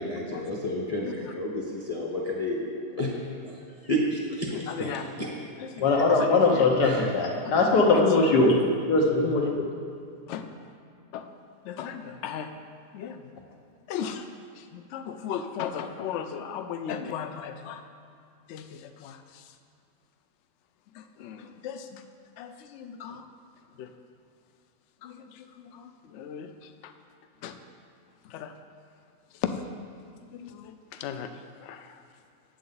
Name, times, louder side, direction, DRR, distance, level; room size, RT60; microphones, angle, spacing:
voice 1, 0.0-3.1 3.4-4.9 5.2-5.4 6.8-7.1, equal, 30° left, -3 dB, 0.8 m, -31 dB
voice 2, 4.5-5.0 5.6-6.7 7.4-7.5 7.9-8.3 10.3-10.4 11.1-11.3 11.6-12.5 12.9-13.3 13.9-14.3 14.5-17.8 18.5-19.5 20.9-22.0 22.4-23.3 23.8-23.9 25.0-26.9 27.4-27.6 28.2-28.5 29.3-29.5 30.3-32.0, left 8 dB, 75° left, 8 dB, 0.6 m, -37 dB
voice 3, 5.8-8.6 8.9-9.7, left 3 dB, 90° left, 0 dB, 1.6 m, -21 dB
8.2 x 7.5 x 4.0 m, 2.3 s
omnidirectional pair, 1.7 m